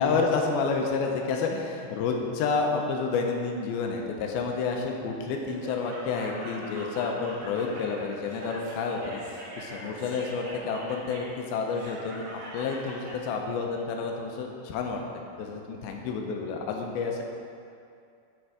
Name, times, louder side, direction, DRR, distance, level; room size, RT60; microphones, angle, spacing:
voice 1, 0.0-12.3 12.5-15.0 15.4-17.2, left 4 dB, 90° left, 1 dB, 2.6 m, -29 dB
Laughter, 5.5-13.2, right 1 dB, 85° right, 3.6 m, -42 dB
10.5 x 4.4 x 4.9 m, 2.5 s
omnidirectional pair, 4.3 m